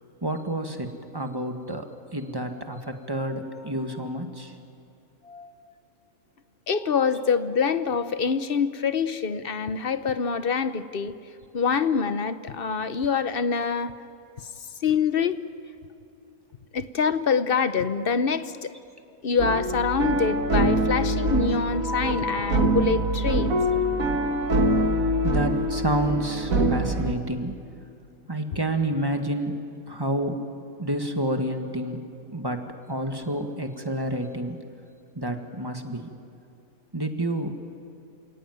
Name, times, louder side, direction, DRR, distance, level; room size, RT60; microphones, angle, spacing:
voice 1, 0.2-1.9 2.1-4.6 5.2-5.7 6.7-7.3 13.8-13.9 25.2-27.6 28.3-30.4 30.8-32.0 32.3-32.6 32.9-34.6 35.1-36.1 36.9-37.5, right 1 dB, 15° right, 5 dB, 1.6 m, -29 dB
voice 2, 6.7-11.1 11.5-13.9 14.8-15.4 16.7-18.7 19.2-23.6, left 6 dB, 45° left, 12 dB, 0.9 m, -25 dB
sound 1, 19.4-27.1, right 1 dB, 70° right, 2.0 m, -24 dB
28.5 x 17.5 x 9.4 m, 2.5 s
omnidirectional pair, 1.5 m